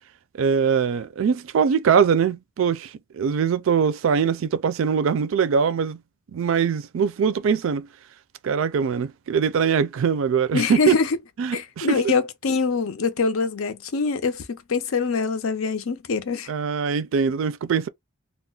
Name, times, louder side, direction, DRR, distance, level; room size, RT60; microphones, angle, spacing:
voice 1, 0.4-6.0 6.3-7.9 8.4-11.0 11.4-12.1 16.5-17.9, right 6 dB, 65° right, 0.4 m, -22 dB
voice 2, 10.5-11.1 11.5-16.5, left 4 dB, 80° left, 0.6 m, -24 dB
2.3 x 2.1 x 3.7 m
head